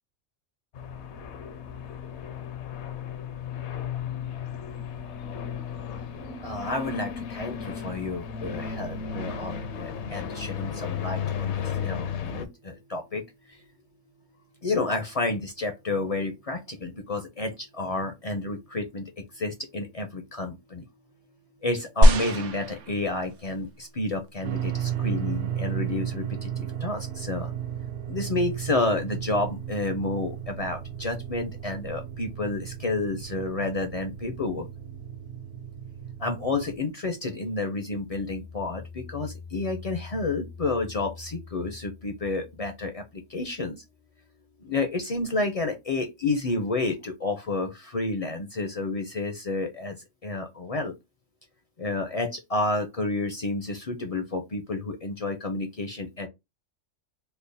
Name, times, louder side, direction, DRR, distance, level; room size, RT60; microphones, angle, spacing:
sound 1, 0.7-12.5, left 7 dB, 70° left, 0.8 m, -34 dB
voice 1, 6.4-13.6 14.6-20.8 21.6-27.5 28.1-34.7 36.2-43.8 44.6-50.0 50.2-50.9 51.8-56.3, left 2 dB, 50° left, 0.4 m, -30 dB
sound 2, 22.0-23.5 24.3-24.4, equal, 80° right, 1.0 m, -20 dB
sound 3, 24.4-36.8, right 10 dB, 60° right, 0.6 m, -34 dB
3.3 x 2.1 x 3.8 m
omnidirectional pair, 1.3 m